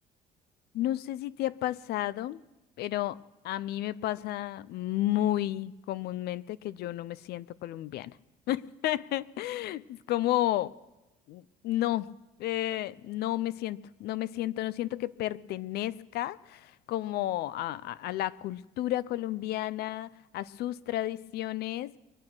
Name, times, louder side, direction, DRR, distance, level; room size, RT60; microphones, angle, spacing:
voice 1, 0.7-2.4 2.8-3.2 3.4-8.2 8.5-10.8 11.3-12.1 12.4-22.0, left 14 dB, 75° left, 0.5 m, -32 dB
22.5 x 8.7 x 6.2 m
cardioid pair, 110°, 17 cm